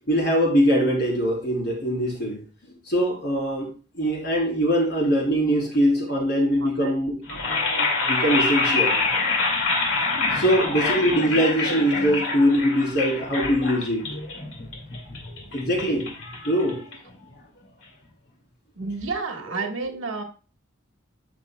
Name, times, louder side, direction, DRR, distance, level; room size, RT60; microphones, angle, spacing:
voice 1, 0.1-2.4 2.9-3.7 3.9-9.0 10.3-14.1 15.5-16.1 16.4-16.8, equal, 55° left, 4.2 m, -22 dB
sound 1, 7.2-17.3, left 3 dB, 75° left, 2.4 m, -26 dB
voice 2, 18.8-20.2, right 4 dB, 85° right, 1.6 m, -31 dB
13.0 x 6.0 x 2.3 m
head